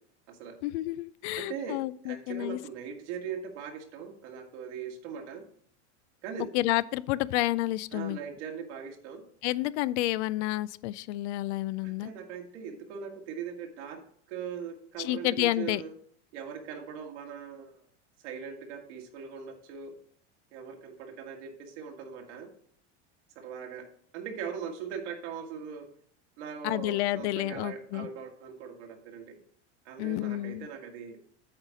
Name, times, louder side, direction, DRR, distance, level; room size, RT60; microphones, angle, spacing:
voice 1, 0.6-2.6 6.5-8.2 9.4-12.1 15.0-15.8 26.6-28.1 30.0-30.7, left 16 dB, 70° left, 19 dB, 0.5 m, -30 dB
voice 2, 1.4-1.8 2.0-5.4 6.2-6.4 7.9-9.2 11.8-14.0 14.3-15.9 16.3-17.8 18.2-19.9 20.5-22.5 23.4-23.8 24.1-25.9 26.4-29.4 29.9-31.2, right 7 dB, 75° right, 3 dB, 1.9 m, -40 dB
8.7 x 4.1 x 6.2 m, 0.62 s
supercardioid pair, 115°, 35 cm